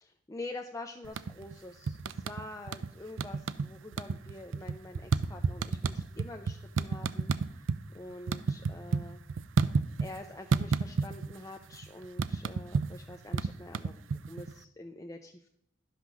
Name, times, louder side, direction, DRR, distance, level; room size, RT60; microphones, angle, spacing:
voice 1, 0.0-7.7 7.9-9.2 10.0-15.5, left 2 dB, 15° left, 3 dB, 0.5 m, -46 dB
sound 1, 1.0-1.5 1.9-2.9 3.2-3.7 3.9-7.8 8.1-10.2 10.5-11.4 11.6-14.5, right 4 dB, 85° right, 0.5 m, -30 dB
11.5 x 5.8 x 6.1 m, 0.71 s
head